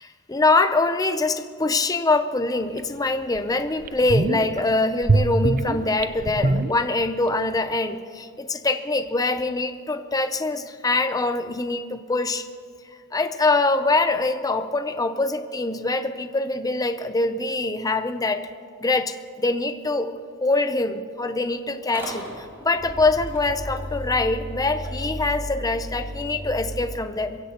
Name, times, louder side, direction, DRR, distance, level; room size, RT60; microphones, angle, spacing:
voice 1, 0.3-12.4 13.1-18.5 18.8-27.4, left 2 dB, 15° left, 9 dB, 0.6 m, -24 dB
sound 1, 2.8-2.9 3.3-3.4 3.8-4.6 5.0-7.3 7.5-7.6, right 2 dB, 40° right, 0.6 m, -23 dB
Motor vehicle (road) / Engine starting, 21.8-26.9, equal, 10° right, 4.8 m, -34 dB
23.0 x 16.0 x 2.9 m, 2.2 s
head